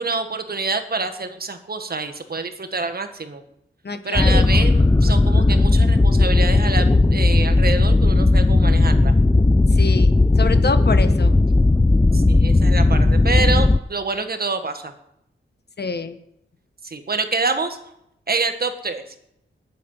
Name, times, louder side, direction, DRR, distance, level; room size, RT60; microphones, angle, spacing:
voice 1, 0.0-3.4 4.0-9.1 12.1-14.9 16.8-17.8 18.3-19.0, right 3 dB, 50° right, 8 dB, 1.6 m, -26 dB
voice 2, 3.8-4.4 9.7-11.3 15.8-16.2, left 4 dB, 50° left, 9 dB, 1.4 m, -27 dB
sound 1, 4.2-13.8, left 2 dB, 15° left, 0.5 m, -16 dB
20.5 x 8.6 x 5.7 m, 0.80 s
wide cardioid pair, 80°, 21 cm